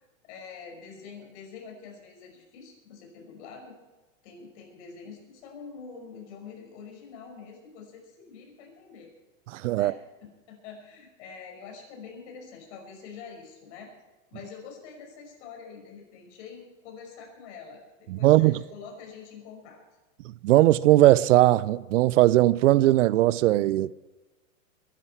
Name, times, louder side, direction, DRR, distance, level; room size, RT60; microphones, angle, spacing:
voice 1, 0.0-3.7 4.2-9.1 9.7-13.9 14.3-19.8, left 5 dB, 55° left, 5.8 m, -45 dB
voice 2, 9.5-9.9 18.1-18.6 20.4-23.9, right 15 dB, 65° right, 0.6 m, -19 dB
22.0 x 11.5 x 4.6 m
hypercardioid pair, 135°, 41 cm